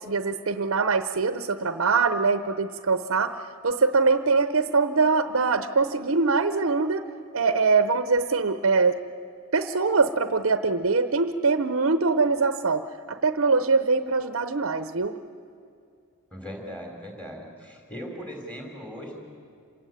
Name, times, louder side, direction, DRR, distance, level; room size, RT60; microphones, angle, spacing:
voice 1, 0.0-3.4 3.6-7.0 7.3-9.0 9.5-15.2, right 4 dB, 65° right, 11 dB, 0.8 m, -23 dB
voice 2, 16.3-19.2, equal, 5° left, 1 dB, 3.9 m, -39 dB
27.0 x 17.0 x 9.3 m, 2.4 s
head